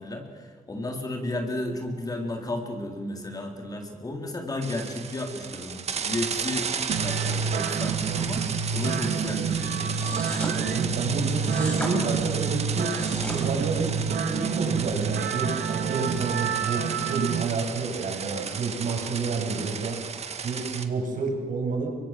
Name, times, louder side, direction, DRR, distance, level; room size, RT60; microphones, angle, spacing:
voice 1, 0.0-8.4 8.7-9.9, left 1 dB, 25° left, 3 dB, 3.9 m, -33 dB
sound 1, 4.6-20.9, right 6 dB, 45° right, 1.8 m, -34 dB
sound 2, 6.9-17.4, right 6 dB, 85° right, 2.1 m, -29 dB
sound 3, 10.0-10.5 11.4-11.9 12.8-13.4, equal, 10° left, 6.2 m, -34 dB
voice 2, 10.5-12.9 13.3-20.0 20.4-21.9, right 4 dB, 65° right, 2 dB, 7.7 m, -29 dB
29.5 x 24.5 x 7.6 m, 1.5 s
wide cardioid pair, 155°, 15 cm